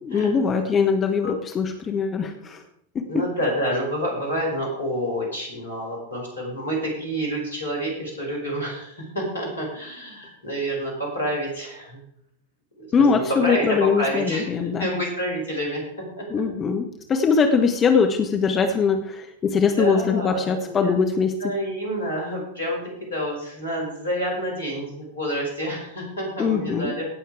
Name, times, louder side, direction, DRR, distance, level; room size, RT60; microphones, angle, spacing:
voice 1, 0.0-2.6 2.9-3.1 12.9-14.9 16.3-21.3 26.4-26.9, left 5 dB, 25° left, 5 dB, 1.1 m, -22 dB
voice 2, 3.1-12.0 12.8-15.8 16.2-16.4 19.8-21.0 21.4-27.1, equal, 75° left, -1 dB, 5.0 m, -28 dB
17.0 x 6.4 x 4.8 m, 0.76 s
figure-of-eight pair, 90°, 0 cm